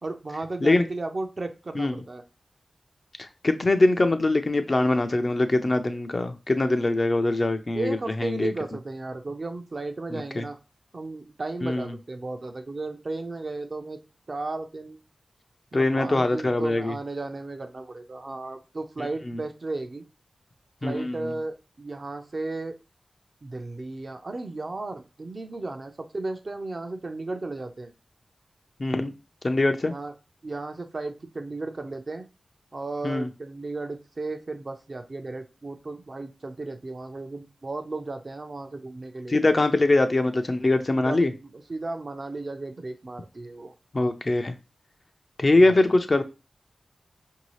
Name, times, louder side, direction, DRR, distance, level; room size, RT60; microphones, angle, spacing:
voice 1, 0.0-2.2 7.7-10.6 10.9-14.0 14.3-15.0 15.7-20.0 20.8-22.8 23.4-27.9 29.9-30.1 30.4-32.2 32.7-39.4 40.9-43.7 45.6-45.8, right 2 dB, 50° right, 5 dB, 0.6 m, -34 dB
voice 2, 3.2-8.5 10.1-10.4 11.6-11.9 15.7-17.0 19.0-19.4 20.8-21.3 28.8-29.1 29.4-29.9 33.0-33.3 39.3-41.3 43.9-44.6 45.4-46.2, left 2 dB, 45° left, 7 dB, 0.5 m, -23 dB
4.7 x 2.7 x 3.0 m, 0.29 s
cardioid pair, 55°, 0 cm